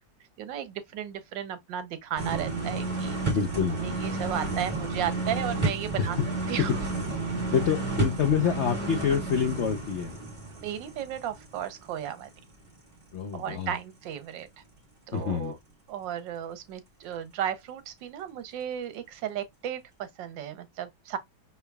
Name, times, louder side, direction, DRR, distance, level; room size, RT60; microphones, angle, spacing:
voice 1, 0.4-3.2 3.8-6.2 6.5-6.8 10.6-12.3 13.3-14.5 15.1-15.6 15.9-21.2, right 10 dB, 80° right, 1.4 m, -34 dB
sound 1, 2.2-12.0 12.3-12.4, right 2 dB, 25° right, 1.7 m, -31 dB
voice 2, 3.3-3.8 6.0-6.1 7.5-10.1 13.1-13.7 15.1-15.5, left 7 dB, 80° left, 0.6 m, -27 dB
5.7 x 3.4 x 2.3 m
omnidirectional pair, 2.0 m